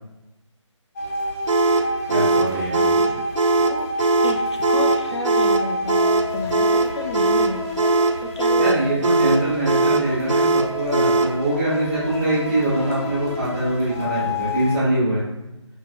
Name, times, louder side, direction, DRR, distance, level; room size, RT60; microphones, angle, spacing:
sound 1, 1.0-14.7, left 2 dB, 30° left, 1.4 m, -30 dB
sound 2, 1.5-11.4, right 3 dB, 70° right, 0.6 m, -20 dB
voice 1, 2.1-2.9 8.6-15.2, right 1 dB, ahead, -25 dB, 0.3 m, -23 dB
voice 2, 2.7-3.2 3.6-3.9 4.2-6.1 6.3-7.7 8.2-8.9, left 2 dB, 60° left, 5 dB, 0.7 m, -32 dB
4.6 x 4.0 x 2.6 m, 0.99 s
figure-of-eight pair, 155°, 16 cm